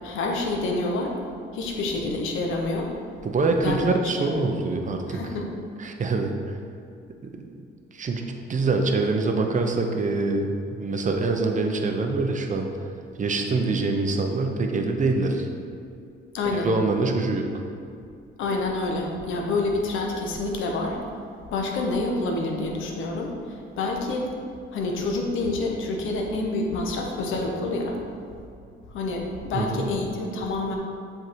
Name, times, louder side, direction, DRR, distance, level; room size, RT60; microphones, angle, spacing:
voice 1, 0.0-1.2 1.5-2.9 3.6-3.8 4.3-4.4 5.1-5.5 16.3-16.7 18.4-21.0 21.5-24.3 24.7-28.0 28.9-30.8, left 2 dB, 80° left, 0 dB, 1.0 m, -27 dB
voice 2, 3.2-5.2 5.8-6.6 7.2-7.5 7.9-8.2 8.5-12.7 13.2-15.5 16.5-17.5 29.5-29.9, right 3 dB, 40° right, 3 dB, 0.8 m, -25 dB
7.6 x 3.8 x 4.7 m, 2.5 s
cardioid pair, 90°, 20 cm